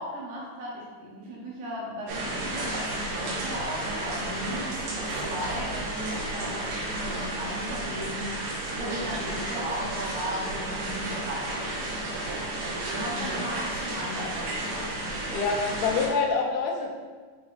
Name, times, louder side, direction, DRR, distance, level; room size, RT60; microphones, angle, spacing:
voice 1, 0.0-11.7 12.6-14.4 15.0-15.2, equal, 70° right, -6 dB, 2.1 m, -36 dB
sound 1, 2.1-16.1, right 1 dB, 90° right, 2.7 m, -32 dB
voice 2, 15.3-17.0, left 4 dB, 90° left, 0 dB, 2.5 m, -26 dB
7.0 x 2.6 x 2.4 m, 1.5 s
omnidirectional pair, 4.2 m